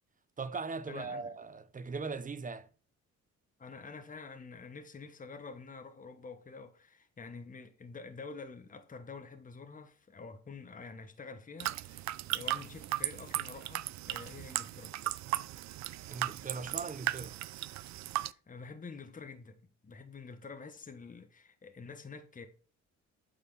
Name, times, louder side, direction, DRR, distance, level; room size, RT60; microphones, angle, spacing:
voice 1, 0.4-2.7 16.1-17.4, right 4 dB, 25° right, 0.8 m, -39 dB
voice 2, 0.9-1.3 3.6-12.0 12.3-14.9 18.2-22.5, left 4 dB, 25° left, 1.1 m, -48 dB
sound 1, 11.6-18.3, right 15 dB, 65° right, 0.5 m, -37 dB
8.7 x 4.3 x 5.5 m
cardioid pair, 90°, 30 cm